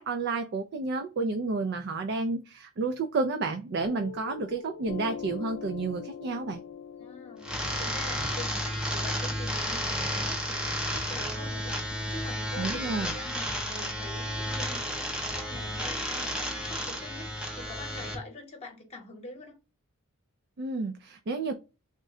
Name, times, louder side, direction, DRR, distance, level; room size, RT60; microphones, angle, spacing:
voice 1, 0.0-6.6 12.6-13.1 20.6-21.5, right 3 dB, 50° right, 0.4 m, -31 dB
Piano, 3.8-10.9, left 7 dB, 80° left, 0.4 m, -43 dB
voice 2, 7.0-19.6, left 2 dB, 30° left, 0.9 m, -45 dB
sound 1, 7.4-18.2, equal, 5° right, 0.5 m, -32 dB
3.7 x 2.1 x 3.6 m
head